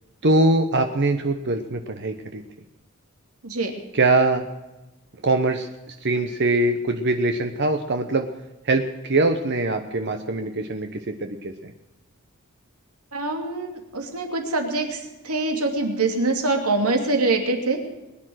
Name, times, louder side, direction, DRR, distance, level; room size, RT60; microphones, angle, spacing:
voice 1, 0.2-2.4 3.9-4.4 5.2-8.3 8.6-11.7, right 2 dB, 50° right, 6 dB, 0.9 m, -22 dB
voice 2, 13.1-15.0 15.2-17.8, right 3 dB, 80° right, 3 dB, 2.7 m, -24 dB
21.0 x 10.0 x 6.3 m, 1.1 s
head